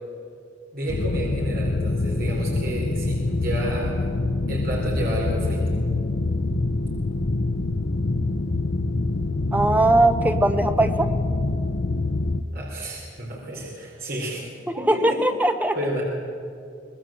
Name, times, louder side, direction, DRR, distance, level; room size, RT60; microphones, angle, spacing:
voice 1, 0.7-3.9 4.5-5.7 12.5-14.4 14.8-15.2 15.7-16.0, right 1 dB, 50° right, -3 dB, 4.3 m, -31 dB
sound 1, 0.9-12.4, left 2 dB, 50° left, 0.8 m, -25 dB
voice 2, 9.5-11.1 14.8-15.7, right 2 dB, 10° right, 8 dB, 0.8 m, -20 dB
24.5 x 20.0 x 7.8 m, 2.5 s
head